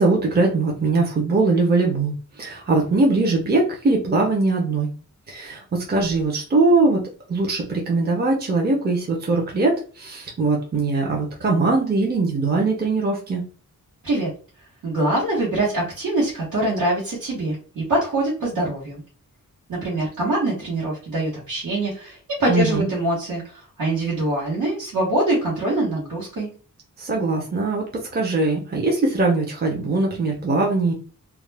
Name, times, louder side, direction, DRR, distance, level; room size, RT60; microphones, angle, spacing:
voice 1, 0.0-4.9 5.3-7.0 7.3-13.4 22.5-22.9 27.0-27.9 28.1-30.9, right 3 dB, 30° right, -1 dB, 0.5 m, -21 dB
voice 2, 14.8-19.0 19.7-26.5, right 1 dB, 75° right, -7 dB, 1.1 m, -24 dB
2.3 x 2.1 x 3.2 m, 0.37 s
wide cardioid pair, 160°, 34 cm